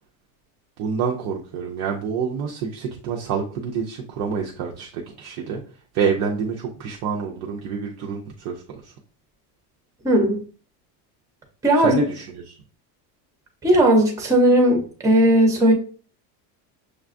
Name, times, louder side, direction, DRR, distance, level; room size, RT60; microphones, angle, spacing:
voice 1, 0.8-5.6 5.9-8.9 11.8-12.6, right 6 dB, 40° right, -1 dB, 0.4 m, -27 dB
voice 2, 10.0-10.4 11.6-12.0 13.6-15.7, right 1 dB, 5° right, 2 dB, 0.7 m, -17 dB
6.4 x 2.3 x 2.5 m, 0.39 s
cardioid pair, 160°, 45 cm